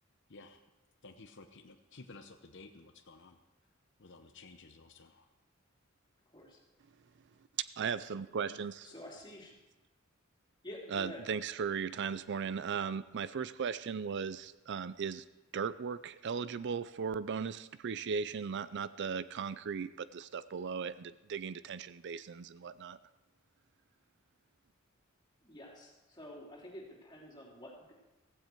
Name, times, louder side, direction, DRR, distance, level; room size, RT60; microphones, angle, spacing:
voice 1, 0.3-0.6 1.0-3.4 4.0-5.3, left 3 dB, 60° left, 7 dB, 0.8 m, -54 dB
voice 2, 6.3-6.6 8.8-9.5 10.6-11.2 25.4-27.9, left 1 dB, 20° left, -3 dB, 3.4 m, -49 dB
voice 3, 7.6-8.9 10.9-15.2 15.5-23.0, right 6 dB, 55° right, 15 dB, 0.4 m, -37 dB
15.5 x 15.0 x 4.6 m, 1.1 s
head